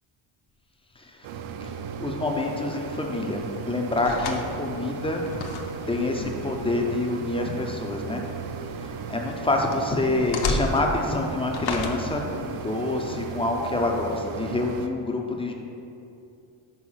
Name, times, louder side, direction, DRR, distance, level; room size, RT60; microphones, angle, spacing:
sound 1, 1.2-14.9, right 5 dB, 80° right, 0.6 m, -36 dB
voice 1, 2.0-3.4 3.7-5.3 5.9-8.2 8.8-15.5, left 2 dB, 10° left, 1 dB, 0.4 m, -27 dB
sound 2, 2.2-14.2, left 3 dB, 55° left, 0.8 m, -36 dB
5.6 x 5.1 x 6.2 m, 2.7 s
cardioid pair, 175°, 47 cm